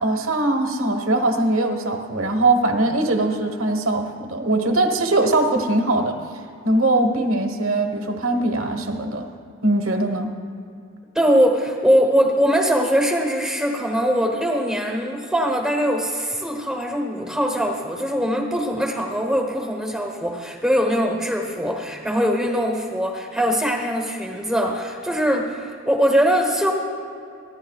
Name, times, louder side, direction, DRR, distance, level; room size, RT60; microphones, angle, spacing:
voice 1, 0.0-6.2 6.6-9.2 9.6-10.3, right 2 dB, 80° right, 4 dB, 1.3 m, -21 dB
voice 2, 11.1-26.7, equal, 5° right, 2 dB, 1.1 m, -21 dB
25.0 x 10.5 x 2.4 m, 2.4 s
head